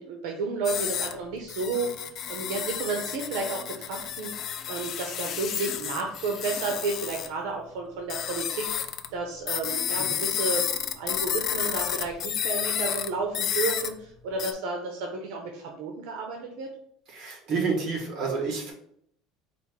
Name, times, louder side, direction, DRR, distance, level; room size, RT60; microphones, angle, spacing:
voice 1, 0.0-16.7, right 3 dB, 70° right, 2 dB, 0.7 m, -32 dB
sound 1, 0.6-1.1 1.5-7.3 8.1-9.1 9.5-13.1 13.3-13.9 14.4-14.5, left 9 dB, 35° left, 0.4 m, -31 dB
voice 2, 17.1-18.7, right 4 dB, 40° right, 0 dB, 1.6 m, -29 dB
4.3 x 2.5 x 4.7 m, 0.70 s
cardioid pair, 165°, 0 cm